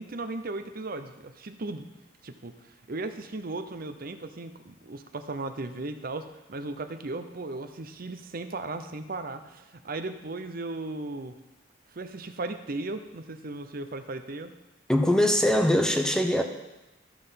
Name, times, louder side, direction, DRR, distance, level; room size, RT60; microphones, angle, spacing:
voice 1, 0.0-1.9 2.2-11.4 11.9-14.5, right 2 dB, 50° right, 9 dB, 0.7 m, -36 dB
voice 2, 14.9-16.4, left 1 dB, 5° left, 5 dB, 0.7 m, -22 dB
13.0 x 5.5 x 5.8 m, 1.0 s
head